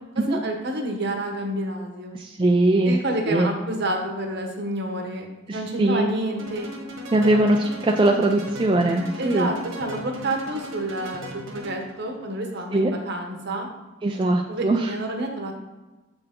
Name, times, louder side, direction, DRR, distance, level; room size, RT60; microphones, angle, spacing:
voice 1, 0.1-2.2 2.8-6.7 7.2-7.4 9.2-13.7 14.5-15.5, right 1 dB, 55° right, 3 dB, 1.0 m, -29 dB
voice 2, 2.1-3.0 3.3-3.5 5.5-6.1 7.1-7.6 7.8-9.5 12.7-12.9 14.0-14.9, right 2 dB, 25° right, 1 dB, 0.4 m, -21 dB
sound 1, 6.4-12.0, equal, 80° right, 1.5 m, -38 dB
7.8 x 4.5 x 3.7 m, 1.1 s
head